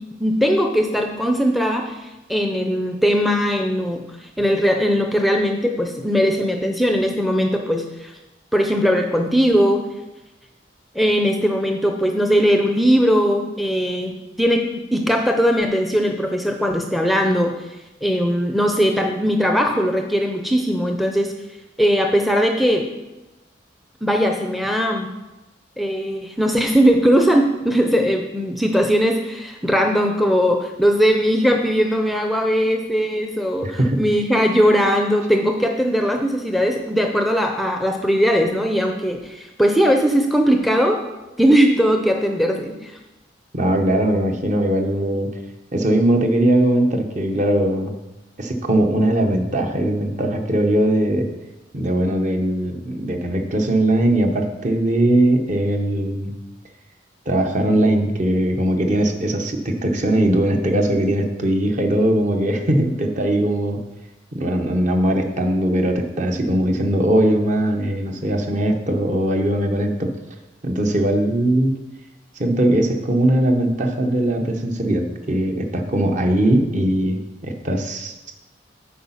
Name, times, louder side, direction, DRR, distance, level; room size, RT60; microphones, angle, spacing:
voice 1, 0.2-8.1 8.5-9.8 10.9-17.7 18.0-21.3 21.8-22.8 24.0-25.1 25.8-41.0 41.4-43.0, equal, ahead, 3 dB, 0.5 m, -19 dB
voice 2, 33.6-34.0 43.5-45.3 45.7-47.9 48.4-51.3 51.7-56.3 57.3-63.8 64.3-70.1 70.6-71.8 72.4-78.3, right 1 dB, 45° right, 4 dB, 0.9 m, -20 dB
8.4 x 4.8 x 5.6 m, 1.0 s
head